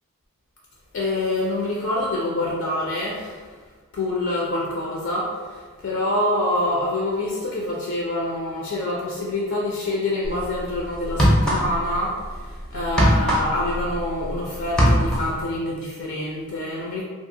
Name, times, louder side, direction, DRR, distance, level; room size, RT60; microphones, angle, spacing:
voice 1, 0.9-3.6 3.9-17.0, left 1 dB, 60° left, -4 dB, 0.4 m, -26 dB
sound 1, 10.2-10.4 11.0-12.0 12.2-14.3 14.6-15.4, equal, 5° left, 0.5 m, -19 dB
2.7 x 2.4 x 2.6 m, 1.4 s
head